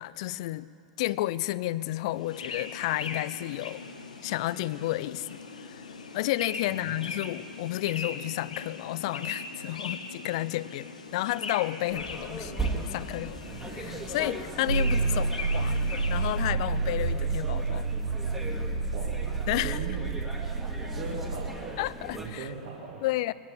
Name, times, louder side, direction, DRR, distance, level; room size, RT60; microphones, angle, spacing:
voice 1, 0.0-3.8 4.2-5.9 6.1-13.4 13.7-15.8 16.1-17.9 19.5-19.8 21.8-22.5 23.0-23.3, left 16 dB, 55° left, 18 dB, 0.4 m, -31 dB
sound 1, 2.1-16.4, left 4 dB, 80° left, 1.1 m, -40 dB
voice 2, 6.7-7.1 18.9-19.1 19.6-20.0 20.9-21.8 22.1-23.0, right 5 dB, 55° right, -4 dB, 2.5 m, -39 dB
sound 2, 11.9-22.3, right 2 dB, 10° right, 1.9 m, -38 dB
sound 3, 14.7-21.5, right 4 dB, 80° right, 0.8 m, -29 dB
20.5 x 9.0 x 6.7 m, 2.9 s
figure-of-eight pair, 95°, 4 cm